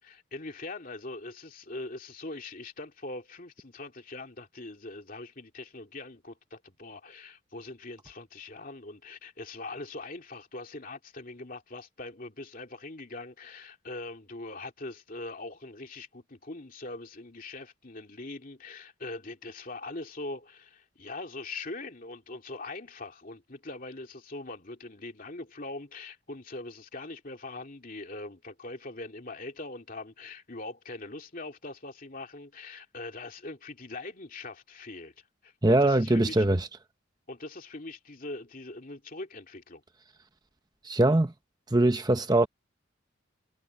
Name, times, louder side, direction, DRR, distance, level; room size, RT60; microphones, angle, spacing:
voice 1, 0.0-36.4 37.3-39.8, left 2 dB, 45° left, 2.7 m, -42 dB
voice 2, 35.6-36.7 40.8-41.3 41.7-42.5, right 1 dB, 20° right, 0.8 m, -22 dB
head